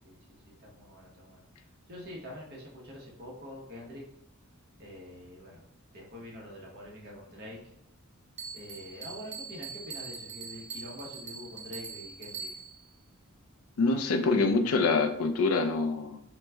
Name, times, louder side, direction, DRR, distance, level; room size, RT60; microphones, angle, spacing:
voice 1, 0.4-1.4 1.9-4.0 4.8-5.7 5.9-7.7 8.5-12.6, left 1 dB, 45° right, -2 dB, 0.9 m, -45 dB
Bell, 8.4-12.9, right 5 dB, 30° right, 0.3 m, -42 dB
voice 2, 13.8-16.2, left 3 dB, 75° left, 7 dB, 0.4 m, -25 dB
3.0 x 2.1 x 3.4 m, 0.76 s
head